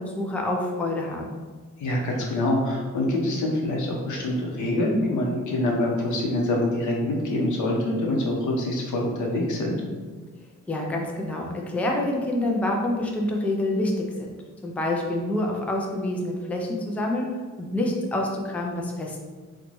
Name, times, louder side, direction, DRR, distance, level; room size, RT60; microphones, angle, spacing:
voice 1, 0.0-1.4 10.7-14.0 14.6-17.3 17.6-19.2, left 1 dB, 5° left, 0 dB, 0.3 m, -27 dB
voice 2, 1.8-9.8, left 1 dB, 80° left, -1 dB, 0.8 m, -25 dB
3.9 x 2.2 x 3.0 m, 1.4 s
wide cardioid pair, 130°, 29 cm